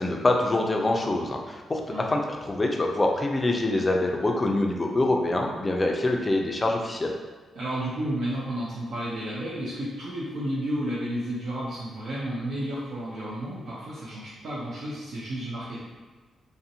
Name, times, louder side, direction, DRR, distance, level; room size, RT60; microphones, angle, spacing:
voice 1, 0.0-1.8 2.1-7.1, left 2 dB, 25° left, 1 dB, 0.3 m, -25 dB
voice 2, 7.5-15.8, right 1 dB, 75° right, -8 dB, 0.5 m, -32 dB
2.5 x 2.1 x 2.7 m, 1.4 s
cardioid pair, 95°, 0 cm